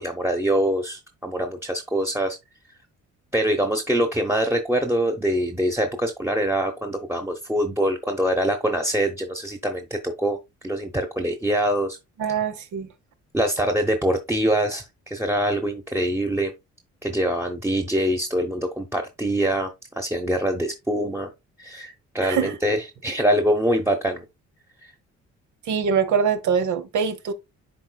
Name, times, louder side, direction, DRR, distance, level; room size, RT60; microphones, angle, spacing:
voice 1, 0.0-2.4 3.3-10.4 10.6-12.0 13.3-16.5 17.0-19.7 20.0-21.3 21.6-24.2 24.8-24.9, right 1 dB, 10° right, 0.9 m, -24 dB
voice 2, 12.2-12.9 22.2-22.5 25.7-27.3, right 6 dB, 75° right, 1.0 m, -23 dB
10.5 x 3.8 x 2.3 m
cardioid pair, 90°, 30 cm